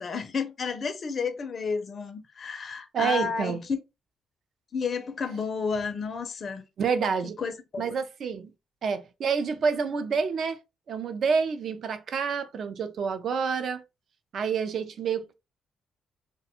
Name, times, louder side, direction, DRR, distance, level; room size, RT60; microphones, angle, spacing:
voice 1, 0.0-3.6 4.7-6.6 7.4-8.0, left 5 dB, 45° left, 0.4 m, -31 dB
voice 2, 2.9-3.6 6.8-7.4 7.8-8.5 8.8-10.6 10.9-13.8 14.3-15.3, right 6 dB, 60° right, 0.4 m, -28 dB
2.4 x 2.2 x 2.8 m
cardioid pair, 90°, 0 cm